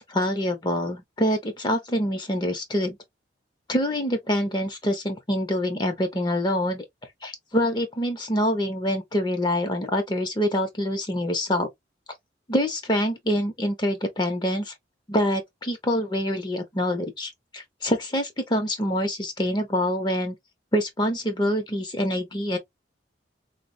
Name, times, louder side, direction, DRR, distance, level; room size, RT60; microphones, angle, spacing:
voice 1, 0.0-3.0 3.7-6.8 7.2-11.7 12.5-14.7 15.1-20.3 20.7-22.6, equal, 25° left, 0.6 m, -25 dB
3.9 x 2.0 x 2.5 m
head